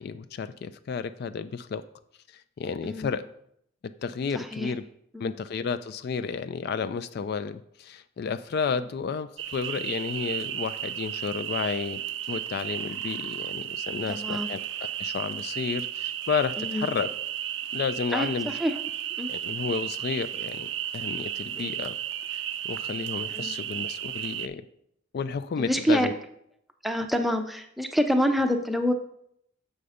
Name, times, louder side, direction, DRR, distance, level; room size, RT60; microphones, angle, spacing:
voice 1, 0.0-1.8 2.6-3.2 4.0-4.8 5.2-12.0 12.3-14.6 15.0-17.1 17.7-18.6 19.3-20.7 20.9-22.0 22.6-24.6 25.1-26.1, left 5 dB, 55° left, 12 dB, 0.3 m, -31 dB
voice 2, 4.3-4.7 5.1-5.3 14.1-14.5 16.6-16.9 18.1-18.8 19.2-19.3 21.6-21.8 23.3-23.6 25.6-26.1 26.8-28.9, equal, ahead, 6 dB, 0.5 m, -27 dB
sound 1, 9.4-24.5, right 11 dB, 70° right, 0.4 m, -33 dB
6.8 x 5.4 x 4.9 m, 0.72 s
head